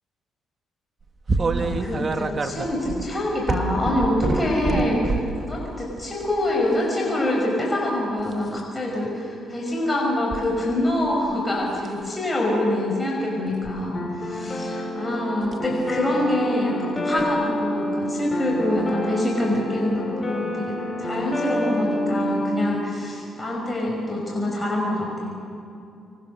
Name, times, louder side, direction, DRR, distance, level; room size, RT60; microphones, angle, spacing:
sound 1, 1.3-5.4 6.1-6.4 8.2-8.6 10.3-10.4 10.9-11.3 11.8-12.0 13.5-13.8 15.5-15.7 17.2-17.3 18.8-18.9 19.5-19.6, right 3 dB, 35° right, 1.4 m, -26 dB
voice 1, 1.4-25.5, left 1 dB, 15° left, -2 dB, 6.1 m, -25 dB
sound 2, 13.9-22.7, left 1 dB, 30° left, 5.2 m, -28 dB
25.5 x 22.5 x 6.8 m, 2.6 s
cardioid pair, 90°, 0 cm